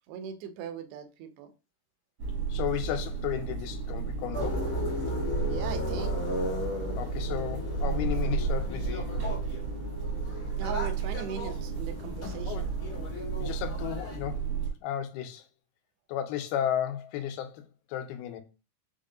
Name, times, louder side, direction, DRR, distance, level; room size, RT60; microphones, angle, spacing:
voice 1, 0.0-1.5 5.5-6.2 10.6-12.7, right 7 dB, 90° right, 2.6 m, -39 dB
sound 1, 2.2-14.7, right 5 dB, 70° right, 1.5 m, -33 dB
voice 2, 2.5-4.7 7.0-9.4 12.5-12.7 13.4-14.5 14.8-15.4 16.1-18.4, left 10 dB, 85° left, 2.6 m, -34 dB
sound 2, 4.3-14.2, left 1 dB, 50° left, 0.9 m, -37 dB
5.9 x 2.1 x 3.7 m
omnidirectional pair, 4.4 m